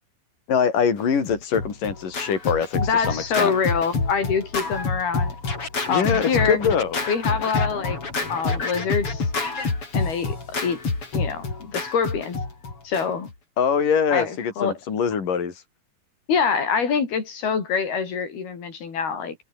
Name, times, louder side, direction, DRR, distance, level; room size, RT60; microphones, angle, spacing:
voice 1, 0.5-3.5 5.9-7.0 13.6-15.6, left 6 dB, 60° left, 5.8 m, -23 dB
Scratching (performance technique), 1.2-13.3, left 3 dB, 35° left, 6.1 m, -28 dB
voice 2, 2.8-5.4 5.9-6.6 7.1-8.0 8.3-9.3 9.9-10.4 10.6-10.8 11.1-12.4 12.8-13.3 14.1-14.8 16.3-19.4, left 6 dB, 85° left, 6.5 m, -25 dB
omnidirectional pair, 4.4 m